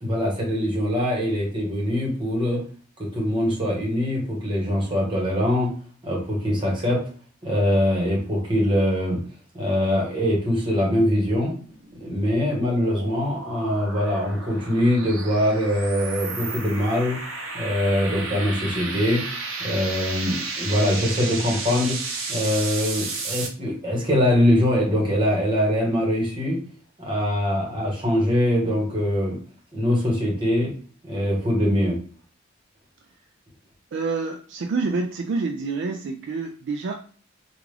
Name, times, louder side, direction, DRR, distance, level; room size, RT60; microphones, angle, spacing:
voice 1, 0.0-2.6 3.0-5.7 6.0-7.0 7.4-9.2 9.5-11.5 11.9-17.2 17.5-19.2 19.6-22.0 22.3-26.6 27.0-29.4 29.7-30.7 31.0-32.0, left 1 dB, 25° right, -2 dB, 1.3 m, -23 dB
sound 1, 11.6-23.5, right 3 dB, 80° right, 0.8 m, -33 dB
voice 2, 33.9-36.9, right 4 dB, 60° right, 4 dB, 0.3 m, -27 dB
3.4 x 2.5 x 3.3 m, 0.41 s
head